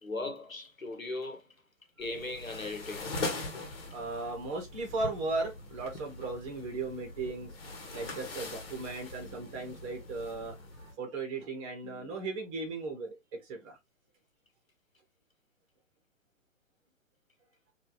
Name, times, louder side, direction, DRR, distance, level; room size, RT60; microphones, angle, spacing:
voice 1, 0.0-1.4 2.0-3.1, left 2 dB, 90° left, 1.2 m, -38 dB
sound 1, 2.0-10.9, left 2 dB, 50° left, 1.4 m, -42 dB
voice 2, 3.9-7.5 7.9-13.2 13.4-13.8, right 3 dB, 25° right, 1.5 m, -36 dB
4.2 x 2.7 x 3.1 m
figure-of-eight pair, 125°, 39 cm